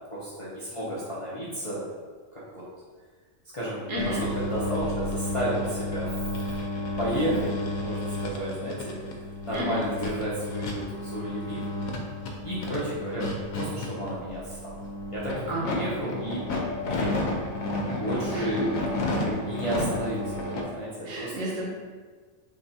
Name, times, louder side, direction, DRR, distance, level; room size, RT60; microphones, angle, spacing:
voice 1, 0.0-1.8 2.3-2.7 3.5-4.2 4.5-6.2 7.0-7.5 7.8-9.0 9.5-11.7 12.4-14.8 15.1-16.4 16.8-17.3 18.0-18.6 19.2-21.3, right 1 dB, 35° left, -9 dB, 0.6 m, -32 dB
voice 2, 3.9-4.2 9.5-9.8 15.5-15.8 18.3-18.7 21.0-21.6, right 1 dB, 70° right, -4 dB, 1.3 m, -31 dB
sound 1, 4.0-20.6, left 1 dB, 85° left, 1.1 m, -32 dB
3.7 x 2.3 x 4.0 m, 1.5 s
omnidirectional pair, 1.4 m